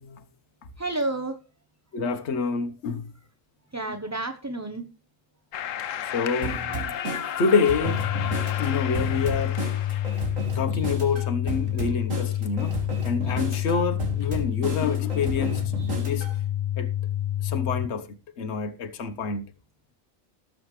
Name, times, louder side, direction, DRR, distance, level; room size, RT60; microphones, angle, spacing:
voice 1, 0.8-1.4 3.7-4.9, right 2 dB, 15° right, 0.9 m, -30 dB
voice 2, 1.9-3.1 6.0-7.0 7.3-8.1 8.6-9.6 10.5-16.4 16.8-16.9 17.4-19.4, left 5 dB, 60° left, 1.3 m, -28 dB
sound 1, 5.5-10.4, left 10 dB, 80° left, 1.1 m, -33 dB
sound 2, 6.4-16.4, right 3 dB, 75° right, 3.5 m, -34 dB
sound 3, 7.9-17.9, left 12 dB, 45° left, 0.4 m, -28 dB
18.5 x 7.7 x 3.2 m
omnidirectional pair, 1.4 m